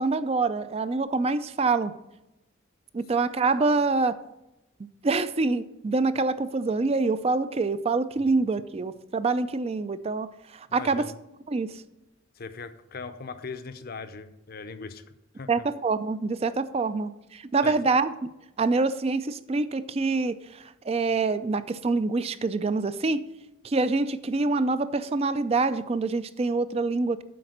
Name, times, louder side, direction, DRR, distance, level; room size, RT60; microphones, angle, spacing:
voice 1, 0.0-1.9 2.9-4.2 5.0-11.1 11.5-11.7 15.5-18.1 18.6-23.2 23.6-27.2, right 3 dB, 30° right, 14 dB, 0.3 m, -26 dB
voice 2, 10.7-11.1 12.4-15.0 15.4-15.7 17.6-17.8, left 4 dB, 45° left, 10 dB, 0.6 m, -39 dB
7.8 x 4.9 x 6.5 m, 0.93 s
head